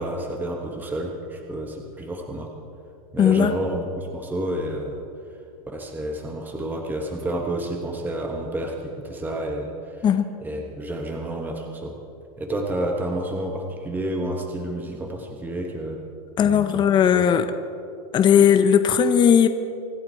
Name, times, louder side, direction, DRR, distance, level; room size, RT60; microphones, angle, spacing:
voice 1, 0.0-2.5 3.1-5.0 5.7-10.0 10.4-11.9 12.4-16.0 16.4-17.2, right 1 dB, 10° right, 2 dB, 1.3 m, -30 dB
voice 2, 3.2-3.5 10.0-10.3 16.4-17.4 18.1-19.5, left 8 dB, 25° left, 8 dB, 0.7 m, -17 dB
25.0 x 11.0 x 4.5 m, 2.6 s
supercardioid pair, 135°, 19 cm